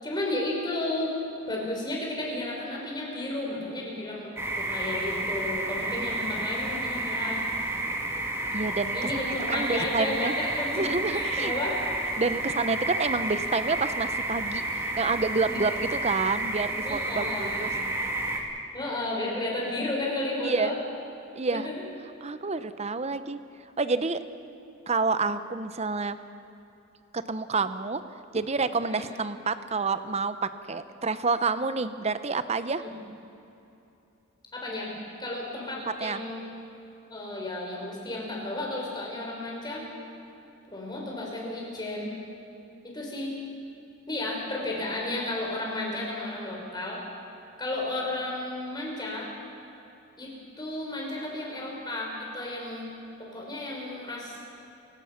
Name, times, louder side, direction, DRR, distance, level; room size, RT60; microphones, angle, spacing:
voice 1, 0.0-1.1 1.5-7.5 8.9-11.8 15.4-15.6 16.8-17.8 18.7-20.8 21.5-21.7 28.8-29.1 32.8-32.9 34.5-34.9 35.2-36.4 37.1-39.9 40.7-42.1 42.8-43.4 44.1-47.0 47.6-49.3 50.2-52.9 53.2-54.4, left 2 dB, 20° left, -2 dB, 5.0 m, -33 dB
sound 1, 4.4-18.4, right 1 dB, 10° right, 2.2 m, -31 dB
voice 2, 8.5-10.4 10.8-11.5 12.2-17.7 20.4-20.8 21.4-21.7 22.2-23.4 23.8-24.2 24.9-26.2 27.1-28.0 28.3-32.8 36.0-36.2, right 4 dB, 30° right, 12 dB, 0.8 m, -28 dB
28.0 x 17.0 x 5.9 m, 2.8 s
head